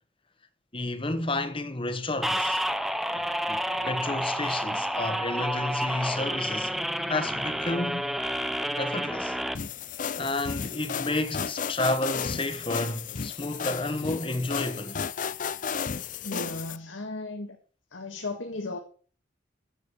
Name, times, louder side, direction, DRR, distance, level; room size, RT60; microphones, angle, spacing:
voice 1, 0.7-2.6 3.1-6.7 7.1-8.1 8.8-9.4 10.2-15.0, left 2 dB, 30° left, 1.2 m, -31 dB
sound 1, 2.2-9.5, equal, ahead, 0.6 m, -29 dB
sound 2, 3.2-8.7, right 1 dB, 50° right, 3.5 m, -52 dB
sound 3, 9.5-16.8, left 6 dB, 45° left, 0.5 m, -33 dB
voice 2, 16.2-17.6 17.9-18.8, left 2 dB, 80° left, 1.8 m, -35 dB
11.5 x 7.5 x 6.9 m
head